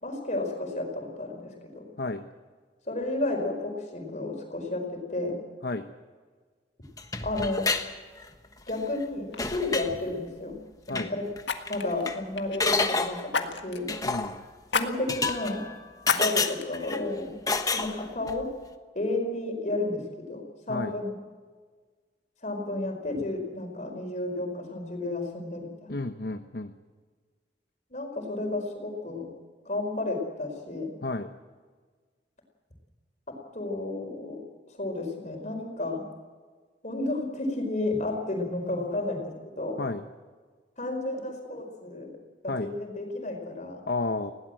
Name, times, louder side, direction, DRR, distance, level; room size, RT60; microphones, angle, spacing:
voice 1, 0.0-1.8 2.9-5.4 7.2-7.7 8.7-10.6 10.9-11.3 11.7-13.9 14.7-15.7 16.1-17.4 17.7-18.5 18.9-21.2 22.4-25.9 27.9-29.3 29.6-30.9 33.3-34.4 34.8-36.0 36.8-39.8 40.8-42.2 42.4-43.8, left 2 dB, 40° left, 3 dB, 4.9 m, -32 dB
sound 1, 7.0-7.9 8.2-8.7 9.0-9.1 9.4-9.9 10.9-11.1 11.4-11.5 11.7-12.2 12.6-13.3 13.9-14.4 15.1-15.8 16.1-17.0 17.5-18.4, left 3 dB, 20° left, 1.2 m, -29 dB
Fire, 8.7-9.0 9.3-9.5 11.4-12.9 13.3-13.9 14.7-14.9 15.3-15.4 16.0-16.6 17.2-17.3, left 5 dB, 80° left, 1.7 m, -30 dB
voice 2, 14.0-14.4 20.7-20.9 25.9-26.7 31.0-31.3 39.8-40.0 42.5-42.7 43.9-44.3, left 2 dB, 60° left, 7 dB, 0.9 m, -31 dB
20.5 x 17.0 x 7.7 m, 1.5 s
head